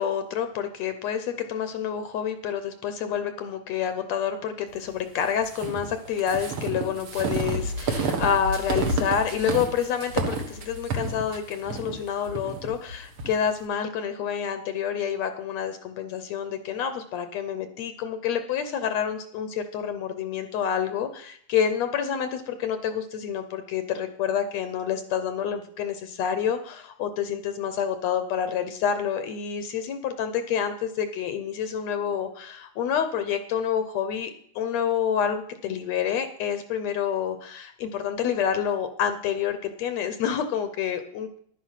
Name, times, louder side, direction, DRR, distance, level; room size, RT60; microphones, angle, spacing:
voice 1, 0.0-41.4, left 8 dB, 70° left, 9 dB, 1.8 m, -28 dB
sound 1, 5.4-13.3, right 3 dB, 55° right, 1.9 m, -30 dB
11.0 x 9.6 x 5.7 m, 0.65 s
omnidirectional pair, 3.4 m